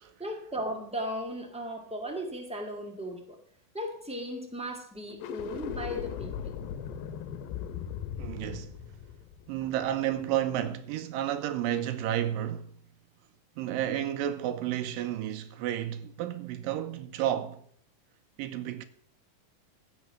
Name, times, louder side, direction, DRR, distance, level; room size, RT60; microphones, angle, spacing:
voice 1, 0.2-3.4 3.7-6.5, equal, 5° right, 0.8 m, -36 dB
sound 1, 5.1-10.4, left 8 dB, 80° left, 2.5 m, -38 dB
voice 2, 8.2-8.7 9.5-12.7 13.6-17.6 18.4-18.9, right 11 dB, 80° right, 2.3 m, -31 dB
16.0 x 5.9 x 6.3 m
omnidirectional pair, 4.1 m